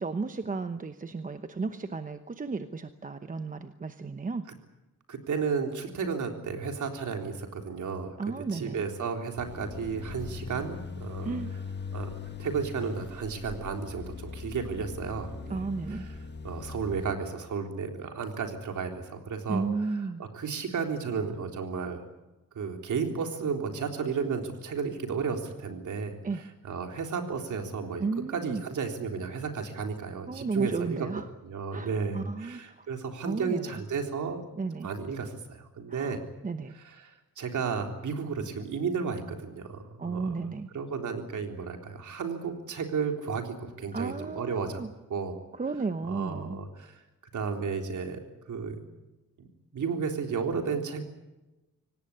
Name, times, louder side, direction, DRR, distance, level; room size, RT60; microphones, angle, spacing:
voice 1, 0.0-4.5 8.2-8.8 11.2-11.5 15.5-16.1 19.5-20.2 26.2-26.4 28.0-28.6 30.3-31.3 31.7-32.9 33.2-33.8 34.6-34.9 35.9-36.7 40.0-40.7 43.9-44.9 45.5-46.6, right 4 dB, 25° right, 9 dB, 0.9 m, -33 dB
voice 2, 5.1-8.2 8.5-11.4 11.9-12.1 12.4-15.6 15.9-16.1 16.4-19.6 20.2-22.0 22.5-26.2 26.6-31.1 31.4-34.4 34.8-36.2 36.8-40.5 40.7-44.8 45.1-45.4 46.1-47.0 47.3-48.2 48.5-48.8 49.7-51.0, right 5 dB, 65° right, 4 dB, 3.8 m, -33 dB
sound 1, 9.4-17.1, left 5 dB, 35° left, 1.6 m, -40 dB
25.0 x 18.5 x 8.7 m, 1.0 s
wide cardioid pair, 135°, 32 cm